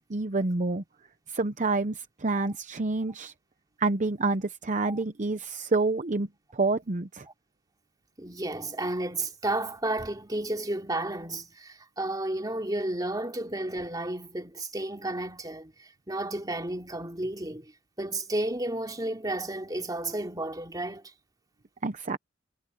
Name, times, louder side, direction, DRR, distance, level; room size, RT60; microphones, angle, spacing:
voice 1, 0.1-0.8 1.3-3.3 3.8-7.3 21.8-22.2, right 3 dB, 40° right, 0.8 m, -28 dB
voice 2, 8.2-17.7 18.0-21.1, right 1 dB, 20° right, 2.9 m, -32 dB
head